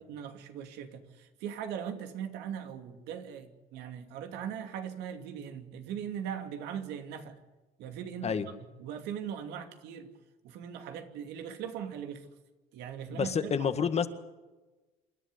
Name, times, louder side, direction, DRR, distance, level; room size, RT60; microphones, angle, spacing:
voice 1, 0.1-7.4 7.8-8.4 8.8-10.1 10.4-12.3 12.7-13.7, right 8 dB, 90° right, 2.7 m, -40 dB
voice 2, 13.1-14.1, left 6 dB, 40° left, 1.8 m, -29 dB
27.5 x 11.5 x 9.9 m
cardioid pair, 110°, 17 cm